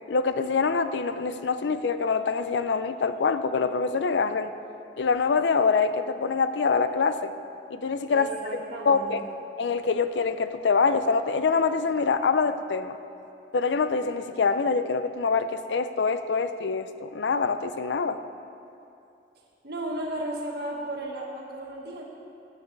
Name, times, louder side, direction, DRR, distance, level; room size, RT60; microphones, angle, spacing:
voice 1, 0.1-4.5 5.0-7.3 7.7-8.3 8.9-9.2 9.6-13.0 13.5-18.2, left 5 dB, 75° left, 11 dB, 0.5 m, -25 dB
voice 2, 8.1-9.2 19.6-22.0, right 1 dB, 65° right, -2 dB, 1.7 m, -34 dB
17.0 x 9.0 x 3.3 m, 2.7 s
head